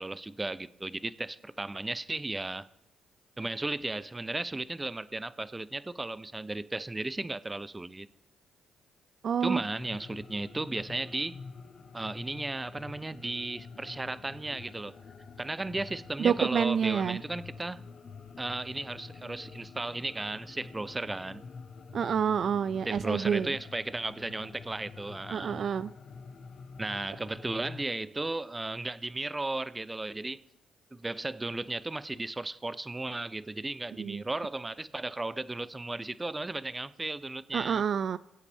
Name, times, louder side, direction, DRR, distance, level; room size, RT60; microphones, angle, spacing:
voice 1, 0.0-2.7 3.4-8.1 9.4-11.4 11.9-15.0 15.4-17.8 18.4-21.4 22.9-25.7 26.8-30.4 30.9-37.8, right 2 dB, 20° right, 0.6 m, -35 dB
voice 2, 9.2-9.6 16.2-17.2 21.9-23.6 25.3-25.9 33.9-34.2 37.5-38.2, right 7 dB, 55° right, 0.3 m, -28 dB
sound 1, 9.8-27.8, left 4 dB, 55° left, 1.1 m, -48 dB
21.5 x 8.3 x 3.5 m
supercardioid pair, 65°, 0 cm